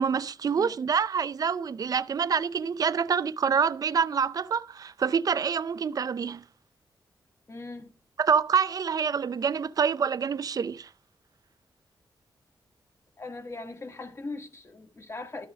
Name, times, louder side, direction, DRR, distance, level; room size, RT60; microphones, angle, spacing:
voice 1, 0.0-6.4 8.2-10.9, right 6 dB, 45° right, 0.5 m, -26 dB
voice 2, 7.5-7.9 13.2-15.5, left 3 dB, 35° left, 2.0 m, -40 dB
13.0 x 6.2 x 4.7 m
wide cardioid pair, 130°, 8 cm